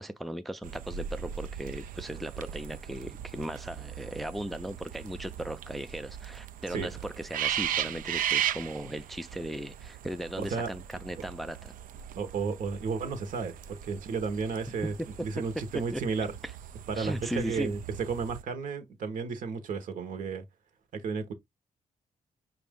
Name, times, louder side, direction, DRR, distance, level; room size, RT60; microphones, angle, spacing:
voice 1, 0.0-11.7 15.9-16.0 16.9-17.8, right 1 dB, ahead, 0.3 m, -37 dB
sound 1, 0.6-18.4, right 10 dB, 85° right, 0.4 m, -38 dB
voice 2, 10.4-10.7 11.2-11.3 12.1-16.3 16.9-17.8 18.1-20.4 20.9-21.3, right 5 dB, 70° right, 1.1 m, -33 dB
5.9 x 2.5 x 3.5 m
wide cardioid pair, 140°, 14 cm